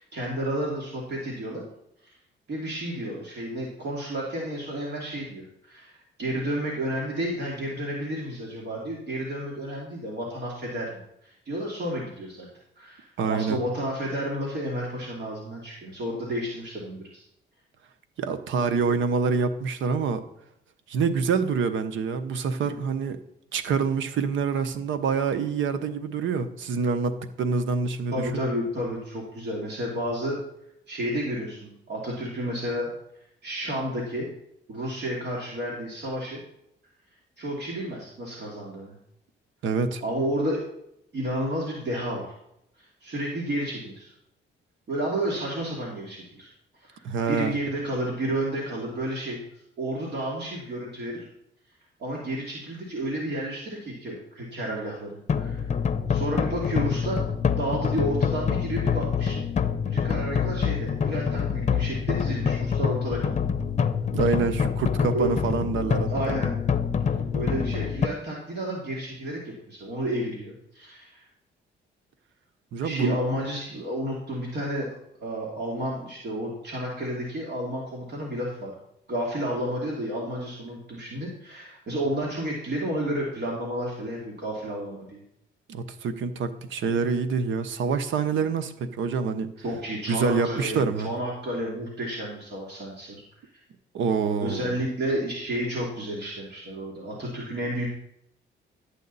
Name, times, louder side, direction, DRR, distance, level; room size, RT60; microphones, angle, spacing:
voice 1, 0.0-1.6 2.0-2.1 2.5-12.5 12.8-17.2 28.1-30.4 30.9-32.9 33.4-34.3 34.7-36.4 37.4-38.9 40.0-40.6 41.1-42.3 43.0-44.1 44.9-46.5 46.8-49.4 49.8-51.2 52.0-55.7 56.1-57.2 57.6-59.4 59.8-63.5 65.0-65.4 66.1-66.6 67.0-71.2 72.8-74.9 75.2-78.8 79.1-85.2 89.6-93.2 94.4-97.9, right 1 dB, 60° right, -2 dB, 2.7 m, -31 dB
voice 2, 13.2-13.6 18.2-20.2 20.9-23.2 23.5-28.4 39.6-40.0 47.0-47.6 64.1-66.4 72.7-73.2 85.7-89.5 90.1-91.1 93.9-94.7, right 5 dB, 75° right, 10 dB, 1.0 m, -26 dB
sound 1, 55.3-68.1, left 7 dB, 35° left, 0.7 m, -26 dB
11.5 x 8.3 x 4.1 m, 0.76 s
cardioid pair, 90°, 20 cm